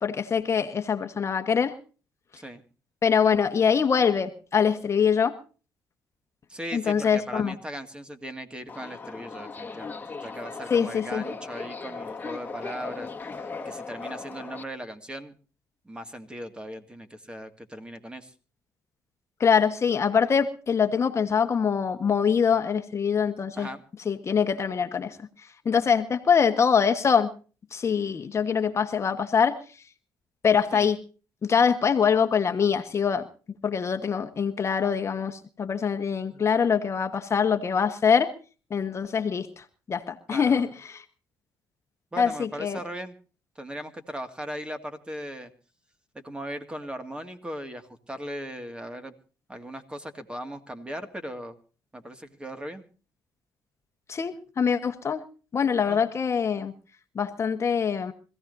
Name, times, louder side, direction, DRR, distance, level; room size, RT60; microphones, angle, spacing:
voice 1, 0.0-1.8 3.0-5.3 6.7-7.5 10.7-11.2 19.4-23.7 24.0-25.2 25.6-27.3 27.7-29.6 30.4-31.0 31.4-33.2 33.6-38.3 38.7-41.0 42.2-42.8 54.1-55.2 55.5-56.7 57.1-58.1, left 6 dB, 40° left, 8 dB, 1.3 m, -24 dB
voice 2, 6.5-13.1 13.4-15.3 15.8-18.3 23.6-23.8 30.7-30.9 40.3-40.6 42.1-43.2 43.6-45.5 46.1-49.1 49.5-51.6 51.9-52.9 55.9-56.1, equal, 15° right, 7 dB, 2.1 m, -38 dB
Subway metro underground, 8.7-14.6, left 4 dB, 25° left, 1.7 m, -38 dB
25.0 x 16.0 x 2.7 m, 0.37 s
cardioid pair, 85°, 7 cm